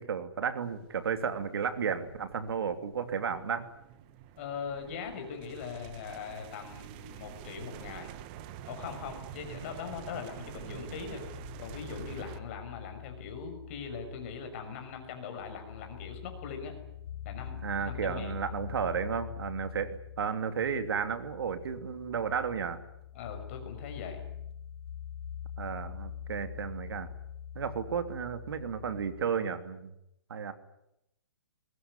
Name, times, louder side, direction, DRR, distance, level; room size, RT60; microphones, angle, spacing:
voice 1, 0.0-3.7 17.6-22.8 25.6-27.1 27.5-29.9 30.3-30.5, right 6 dB, 60° right, 9 dB, 2.9 m, -33 dB
sound 1, 0.6-12.4, right 11 dB, 20° right, 1.1 m, -47 dB
voice 2, 4.4-8.1 8.7-11.2 11.6-16.7 17.2-18.4 23.1-24.2, left 6 dB, 30° left, 5 dB, 5.9 m, -41 dB
sound 2, 10.8-29.2, left 9 dB, 70° left, 6.5 m, -44 dB
22.5 x 21.5 x 9.9 m, 0.83 s
hypercardioid pair, 175°, 14 cm